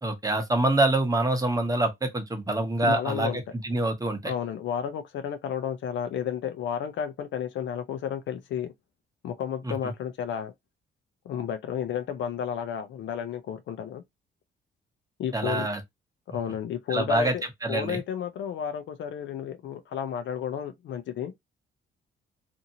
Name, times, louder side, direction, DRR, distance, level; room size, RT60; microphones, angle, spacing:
voice 1, 0.0-4.3 9.6-9.7 15.3-15.8 16.9-17.3 17.6-18.0, right 2 dB, 20° right, 1.0 m, -26 dB
voice 2, 2.8-3.4 4.2-8.7 9.2-10.5 11.2-14.0 15.2-15.7 16.3-17.4 17.7-21.3, left 8 dB, 70° left, 0.6 m, -32 dB
2.7 x 2.6 x 2.8 m
cardioid pair, 90°, 20 cm